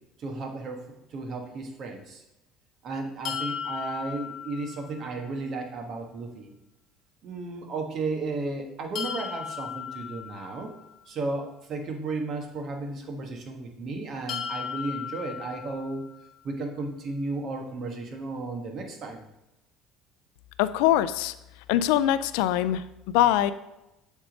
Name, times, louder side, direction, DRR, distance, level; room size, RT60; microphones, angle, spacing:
voice 1, 0.2-2.2 2.8-6.5 7.2-10.7 11.1-16.0 16.4-19.2, right 3 dB, 50° right, 3 dB, 1.4 m, -34 dB
sound 1, 3.2-5.2 8.9-11.0 14.3-16.3, left 8 dB, 60° left, 0.8 m, -36 dB
voice 2, 20.6-21.3 21.7-22.8 23.1-23.5, left 12 dB, 80° left, 14 dB, 0.3 m, -22 dB
7.4 x 3.6 x 5.1 m, 0.93 s
supercardioid pair, 85°, 0 cm